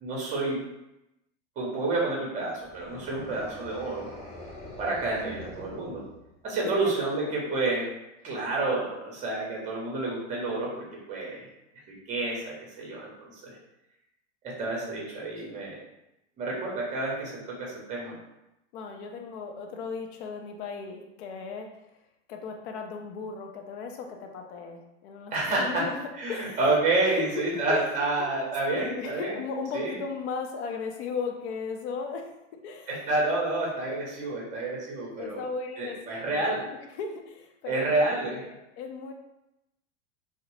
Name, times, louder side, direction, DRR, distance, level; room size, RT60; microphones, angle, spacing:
voice 1, 0.0-0.6 1.6-4.1 4.8-6.1 6.4-7.9 8.2-11.4 11.9-13.6 14.4-15.8 16.4-18.2 25.3-25.8 26.2-29.3 29.7-29.9 32.9-35.4 35.8-36.6 37.7-38.4, right 2 dB, 20° right, -2 dB, 0.7 m, -29 dB
sound 1, 2.6-6.5, left 1 dB, 20° left, 0.5 m, -44 dB
voice 2, 6.8-7.3 18.7-21.8 22.3-26.6 26.9-27.9 28.2-28.3 28.7-32.4 32.6-33.1 35.2-36.0 36.3-37.9 38.2-39.1, left 5 dB, 60° left, 3 dB, 0.6 m, -36 dB
2.6 x 2.0 x 3.0 m, 0.90 s
supercardioid pair, 140°, 38 cm